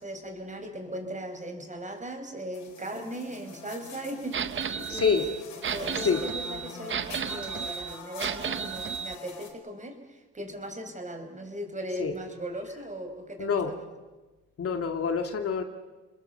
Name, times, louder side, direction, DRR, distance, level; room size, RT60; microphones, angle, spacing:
voice 1, 0.0-5.3 5.7-13.8, right 1 dB, 25° right, 6 dB, 5.2 m, -38 dB
sound 1, 2.5-9.5, left 4 dB, 70° left, 4.8 m, -44 dB
sound 2, 4.3-9.1, right 7 dB, 40° right, 0.9 m, -33 dB
voice 2, 4.9-5.3 6.0-6.2 12.0-12.1 13.4-13.7 14.6-15.6, left 6 dB, 50° left, 5 dB, 2.4 m, -26 dB
29.5 x 21.5 x 6.9 m, 1.2 s
cardioid pair, 90°, 30 cm